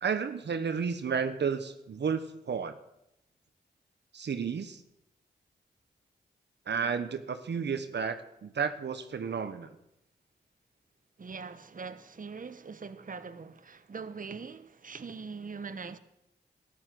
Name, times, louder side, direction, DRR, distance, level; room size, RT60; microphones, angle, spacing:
voice 1, 0.0-2.7 4.1-4.8 6.7-8.2 8.4-9.7, right 6 dB, 65° right, 1.0 m, -32 dB
voice 2, 11.2-16.0, right 5 dB, 45° right, 1.1 m, -42 dB
13.0 x 10.5 x 7.7 m
supercardioid pair, 40°, 19 cm